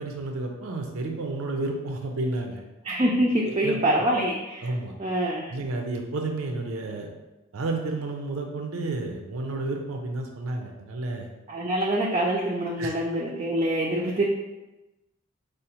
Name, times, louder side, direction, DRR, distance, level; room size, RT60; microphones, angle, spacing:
voice 1, 0.0-2.6 3.4-4.1 4.6-4.9 5.5-7.1 7.5-11.3 12.8-12.9, right 2 dB, 90° right, 2 dB, 0.5 m, -31 dB
voice 2, 2.8-4.7 5.0-5.5 11.5-14.2, right 1 dB, 30° right, -3 dB, 0.3 m, -25 dB
4.9 x 2.0 x 2.8 m, 1.1 s
head